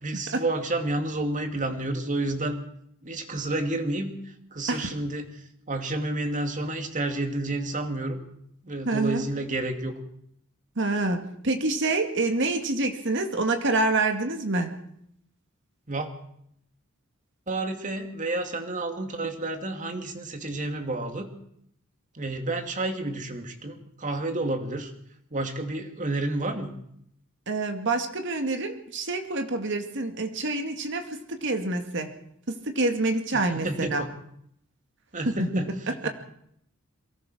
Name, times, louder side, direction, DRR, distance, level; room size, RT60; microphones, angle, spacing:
voice 1, 0.0-2.6 3.0-5.3 5.7-8.2 8.6-9.9 15.9-16.1 17.5-21.3 22.1-24.9 25.3-26.7 33.3-34.1 35.1-36.1, right 2 dB, 35° right, 6 dB, 2.5 m, -30 dB
voice 2, 8.9-9.2 10.8-14.7 27.5-32.1 32.5-34.0 35.3-35.4, right 2 dB, 60° right, 5 dB, 2.1 m, -27 dB
23.0 x 18.0 x 6.3 m, 0.71 s
head